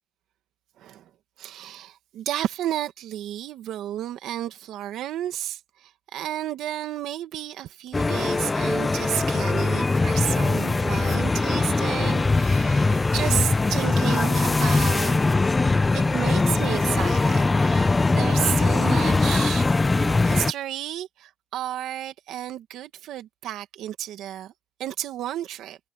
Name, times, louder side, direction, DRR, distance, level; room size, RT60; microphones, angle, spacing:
voice 1, 0.8-1.1 1.4-15.2 15.9-19.7 19.9-24.5 24.8-25.8, right 12 dB, 85° right, 2.1 m, -32 dB
sound 1, 7.9-20.5, left 3 dB, 25° left, 0.9 m, -21 dB
cardioid pair, 90°, 0 cm